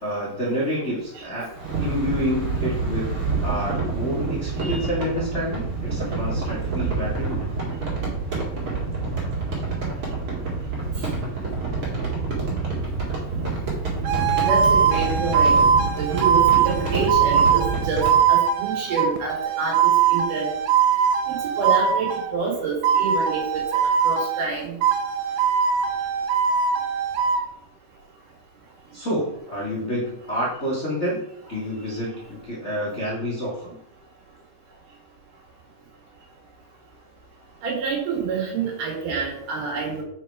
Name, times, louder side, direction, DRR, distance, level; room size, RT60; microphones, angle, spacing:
voice 1, 0.0-1.5 1.8-3.2 3.4-7.4 28.9-31.2 31.5-33.8, equal, 80° left, -8 dB, 0.6 m, -28 dB
sound 1, 1.5-18.2, right 3 dB, 45° right, 2.4 m, -27 dB
sound 2, 14.1-22.4 22.8-24.5 24.8-27.4, right 7 dB, 85° right, 1.8 m, -21 dB
voice 2, 14.4-15.6 16.0-20.5 21.3-23.4 24.0-24.8 37.6-40.0, right 5 dB, 60° right, -2 dB, 3.1 m, -27 dB
5.6 x 4.8 x 4.6 m, 0.73 s
omnidirectional pair, 4.3 m